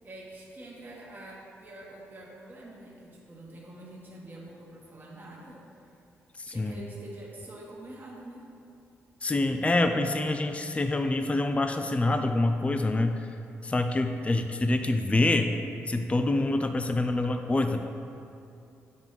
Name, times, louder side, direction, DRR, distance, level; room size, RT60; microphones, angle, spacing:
voice 1, 0.0-5.9 6.4-8.4, right 1 dB, 30° right, -5 dB, 1.2 m, -46 dB
voice 2, 6.4-6.8 9.2-13.3 13.6-15.6 15.9-17.8, left 2 dB, 20° left, 7 dB, 0.4 m, -26 dB
7.2 x 5.2 x 3.1 m, 2.6 s
hypercardioid pair, 45°, 6 cm